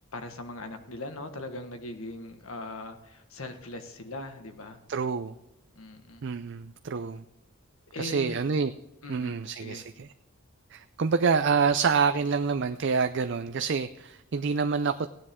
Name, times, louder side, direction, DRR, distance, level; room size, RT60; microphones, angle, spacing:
voice 1, 0.1-4.8 5.7-6.2 7.9-8.5 9.0-9.8, left 2 dB, 75° left, 7 dB, 1.5 m, -40 dB
voice 2, 4.9-5.3 6.2-7.2 8.0-8.7 9.1-10.1 10.7-15.1, right 5 dB, 55° right, 9 dB, 0.4 m, -27 dB
16.0 x 9.7 x 3.7 m, 0.89 s
head